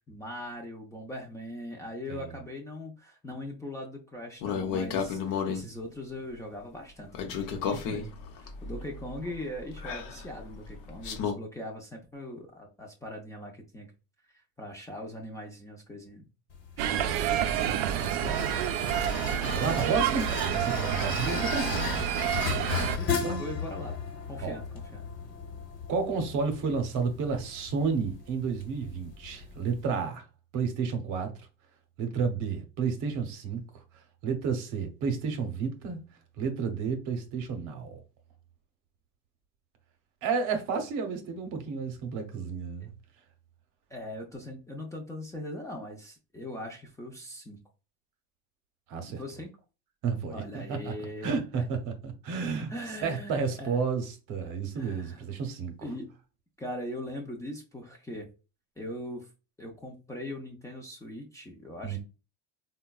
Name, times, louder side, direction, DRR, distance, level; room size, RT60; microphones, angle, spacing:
voice 1, 0.1-13.9 14.6-16.3 16.8-17.3 19.4-20.0 22.9-23.9 24.3-25.0 42.8-42.9 43.9-47.6 49.1-49.5 50.3-51.6 52.7-53.8 54.4-55.2 55.8-56.1 56.6-58.3 58.8-59.3 59.6-62.0, left 1 dB, 10° left, 0.5 m, -41 dB
sound 1, 4.4-5.7 7.1-11.3, left 6 dB, 65° left, 0.7 m, -33 dB
sound 2, 16.5-29.9, left 5 dB, 40° left, 1.1 m, -36 dB
sound 3, 16.8-23.0, right 10 dB, 75° right, 0.5 m, -29 dB
voice 2, 16.9-18.6 19.5-21.9 23.1-23.4 24.4-24.6 25.9-30.2 30.5-31.3 32.0-33.6 34.2-36.0 36.4-38.0 40.2-42.9 48.9-49.2 50.0-50.9 51.2-52.7 53.0-55.7 61.8-62.0, right 5 dB, 55° right, 0.8 m, -31 dB
3.7 x 2.2 x 2.2 m
cardioid pair, 135°, 35 cm